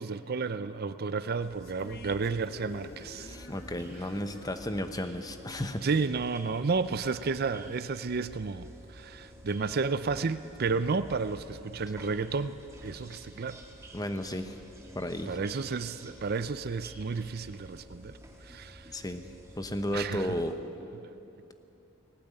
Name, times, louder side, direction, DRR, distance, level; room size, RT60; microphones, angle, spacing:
voice 1, 0.0-3.4 5.8-12.6 12.8-13.6 15.3-18.2 18.4-18.9 19.9-20.3, right 4 dB, 45° right, 13 dB, 0.5 m, -32 dB
sound 1, 1.4-20.5, equal, 15° right, 2.1 m, -50 dB
sound 2, 1.6-7.0, left 2 dB, 45° left, 1.2 m, -50 dB
voice 2, 3.2-5.9 13.9-14.6 14.9-15.4 18.9-19.2 19.6-20.6, left 1 dB, 15° left, 8 dB, 1.0 m, -33 dB
19.0 x 17.5 x 9.0 m, 2.9 s
head